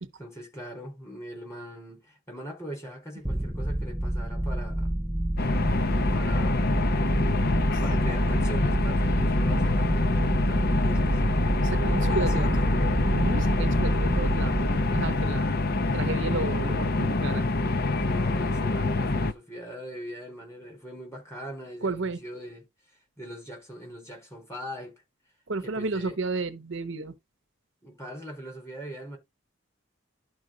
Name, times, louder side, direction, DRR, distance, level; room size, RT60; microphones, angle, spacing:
voice 1, 0.2-4.9 6.1-6.8 7.8-11.3 11.9-12.8 18.0-22.6 23.2-25.0 25.6-26.2 27.8-29.2, equal, 15° left, 4.4 m, -41 dB
sound 1, 3.2-16.6, right 1 dB, 5° right, 0.5 m, -28 dB
sound 2, 5.4-19.3, left 2 dB, 45° left, 0.8 m, -26 dB
voice 2, 11.7-12.6 13.1-15.6 15.9-17.5 21.8-22.2 25.5-27.2, right 3 dB, 60° right, 0.8 m, -32 dB
11.5 x 4.7 x 3.9 m
head